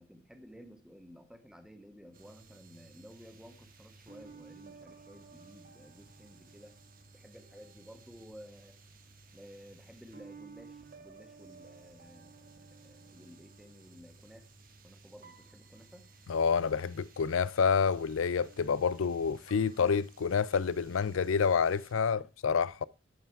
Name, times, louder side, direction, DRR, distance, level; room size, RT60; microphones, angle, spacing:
voice 1, 0.0-6.8 7.1-8.8 9.3-14.5 14.8-16.1, equal, 5° right, 1.5 m, -54 dB
sound 1, 2.1-21.9, right 4 dB, 45° right, 1.4 m, -55 dB
voice 2, 16.3-22.8, left 6 dB, 80° left, 0.5 m, -28 dB
12.0 x 5.8 x 4.6 m
head